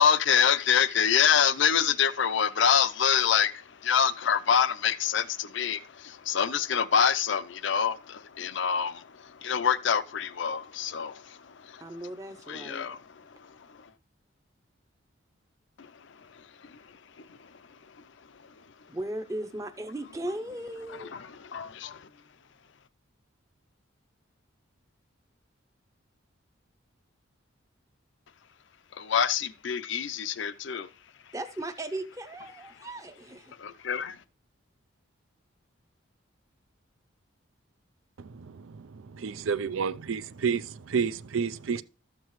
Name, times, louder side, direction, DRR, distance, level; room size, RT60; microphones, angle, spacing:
voice 1, 0.0-11.9 12.5-13.9 15.8-17.5 20.9-22.1 28.9-30.9 32.7-32.9 33.6-34.2, left 7 dB, 65° left, 0.5 m, -27 dB
voice 2, 11.8-12.9 18.9-21.1 31.3-33.5, right 1 dB, 15° right, 0.6 m, -37 dB
voice 3, 39.1-40.6 40.9-41.8, right 6 dB, 85° right, 0.5 m, -29 dB
13.0 x 7.4 x 3.1 m
head